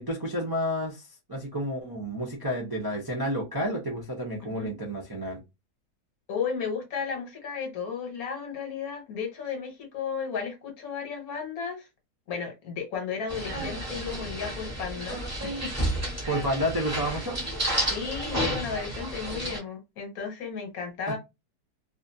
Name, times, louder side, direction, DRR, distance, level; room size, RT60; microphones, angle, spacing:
voice 1, 0.0-5.4 16.3-17.4, equal, 30° right, 0.4 m, -30 dB
voice 2, 4.4-4.7 6.3-11.9 12.3-15.9 16.3-16.4 17.7-21.2, left 6 dB, 65° left, 1.3 m, -34 dB
sound 1, 13.3-19.6, right 1 dB, 10° right, 0.9 m, -31 dB
2.6 x 2.4 x 2.6 m
omnidirectional pair, 1.7 m